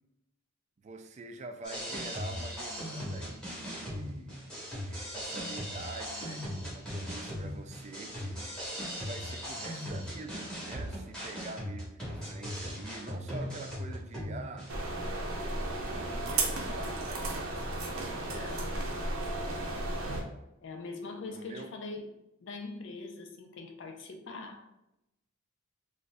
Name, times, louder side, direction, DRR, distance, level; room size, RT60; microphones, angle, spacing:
voice 1, 0.8-8.5 9.0-15.0 15.3-17.7 18.2-18.5 21.3-21.7, right 3 dB, 35° right, 6 dB, 0.3 m, -46 dB
sound 1, 1.6-14.7, equal, 5° left, 1.2 m, -39 dB
sound 2, 14.7-20.2, right 2 dB, 80° right, 0.7 m, -34 dB
voice 2, 18.3-18.9 20.6-22.1 22.4-24.7, left 3 dB, 60° left, 3 dB, 0.5 m, -42 dB
3.9 x 2.6 x 2.3 m, 0.89 s
head